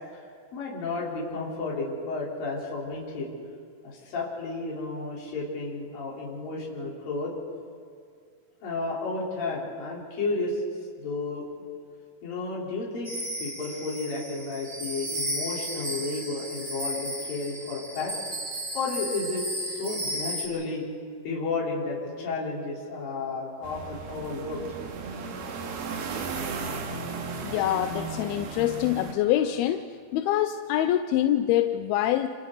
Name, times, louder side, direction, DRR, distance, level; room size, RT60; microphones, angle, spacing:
voice 1, 0.5-3.3 3.8-7.3 8.6-10.6 11.0-11.4 12.2-13.1 13.4-18.1 18.7-20.8 21.2-24.6, left 3 dB, 60° left, -5 dB, 5.5 m, -32 dB
sound 1, 13.0-20.5, equal, 15° right, 3.5 m, -34 dB
sound 2, 23.6-29.1, right 4 dB, 80° right, 3.7 m, -35 dB
Bowed string instrument, 25.8-30.2, right 3 dB, 60° right, 8.1 m, -50 dB
voice 2, 27.4-32.3, left 12 dB, 80° left, 8 dB, 2.5 m, -25 dB
28.5 x 28.0 x 3.9 m, 2.2 s
omnidirectional pair, 4.5 m